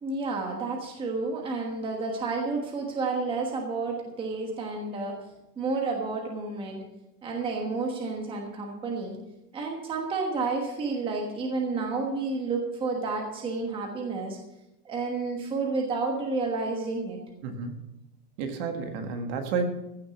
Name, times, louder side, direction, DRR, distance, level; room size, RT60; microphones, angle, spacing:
voice 1, 0.0-5.2 5.6-6.9 7.2-9.2 9.5-14.4 14.8-17.2, right 3 dB, 10° right, 1 dB, 1.3 m, -30 dB
voice 2, 17.4-17.7 18.4-19.7, right 5 dB, 40° right, 5 dB, 1.7 m, -30 dB
15.5 x 6.5 x 7.0 m, 0.89 s
supercardioid pair, 170°, 46 cm